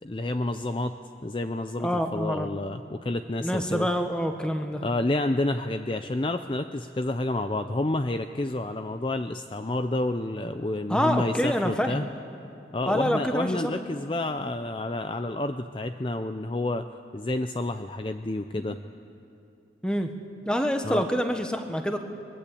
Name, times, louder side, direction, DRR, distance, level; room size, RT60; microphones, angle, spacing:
voice 1, 0.0-3.9 4.8-12.1 12.7-16.9 17.1-18.8 20.8-21.1, left 2 dB, 30° left, 8 dB, 0.5 m, -29 dB
voice 2, 1.8-2.5 3.4-4.8 10.9-12.1 12.9-13.7 19.8-20.1 20.4-22.0, equal, 5° left, 6 dB, 1.3 m, -26 dB
22.5 x 22.0 x 8.5 m, 2.7 s
head